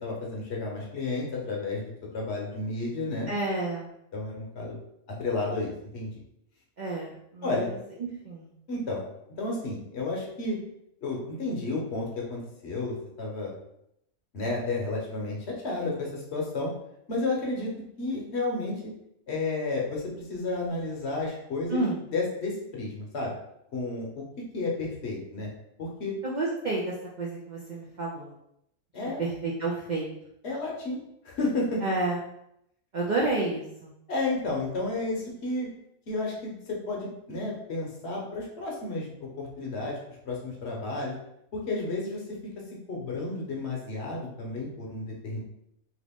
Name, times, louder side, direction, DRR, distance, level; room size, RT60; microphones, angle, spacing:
voice 1, 0.0-3.3 4.1-4.8 5.2-6.1 7.4-7.7 8.7-9.0 9.4-10.6 11.0-13.5 14.3-16.7 17.1-17.7 18.0-18.8 19.3-21.8 22.1-23.3 23.7-24.2 24.5-25.5 25.8-26.1 28.9-29.2 30.4-31.8 34.1-35.7 36.1-40.0 40.2-41.1 41.5-42.2 42.9-45.4, left 2 dB, 55° left, -2 dB, 0.9 m, -32 dB
voice 2, 3.3-3.9 6.8-8.5 21.7-22.0 26.2-28.3 29.2-30.1 31.8-32.2 32.9-33.9, right 2 dB, 75° right, -4 dB, 0.4 m, -30 dB
2.9 x 2.5 x 3.5 m, 0.78 s
omnidirectional pair, 1.5 m